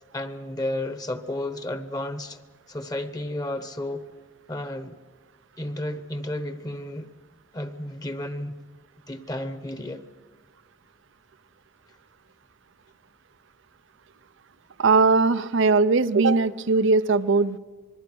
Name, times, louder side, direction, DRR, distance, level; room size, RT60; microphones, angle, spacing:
voice 1, 0.1-2.4 2.7-4.1 4.5-5.0 5.6-7.1 7.5-8.6 9.1-10.0, left 1 dB, 20° left, 1.0 m, -32 dB
voice 2, 14.8-17.6, right 4 dB, 70° right, 0.6 m, -20 dB
26.5 x 21.5 x 6.2 m
head